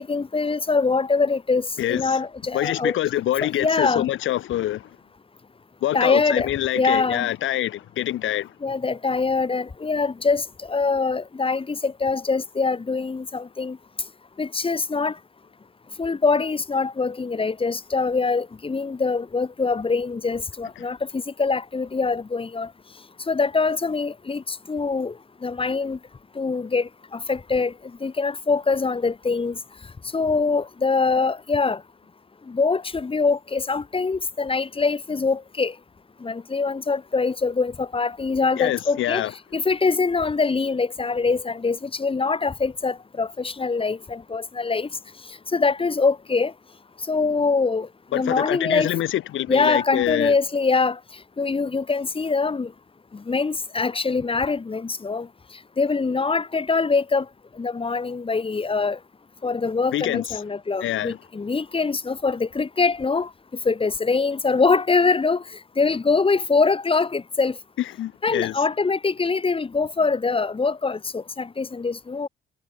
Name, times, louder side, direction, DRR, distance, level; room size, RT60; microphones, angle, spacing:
voice 1, 0.0-3.0 3.6-4.1 5.9-6.5 6.7-7.3 8.6-13.8 14.4-15.2 16.0-22.7 23.3-25.1 25.4-26.0 26.4-27.7 28.0-29.6 30.1-31.8 32.5-35.7 36.2-39.2 39.5-44.9 45.5-46.5 47.1-47.9 48.1-48.9 49.5-51.0 51.4-52.7 53.1-55.3 55.8-57.3 57.6-59.0 59.4-63.3 63.7-65.4 65.8-67.6 68.2-72.3, left 4 dB, 25° left, 2.1 m, -23 dB
voice 2, 1.8-2.2 2.5-5.0 5.8-8.5 20.8-20.9 38.6-39.3 48.1-50.3 59.9-60.4 60.8-61.2 67.8-68.6, left 13 dB, 80° left, 2.8 m, -25 dB
cardioid pair, 90°, 20 cm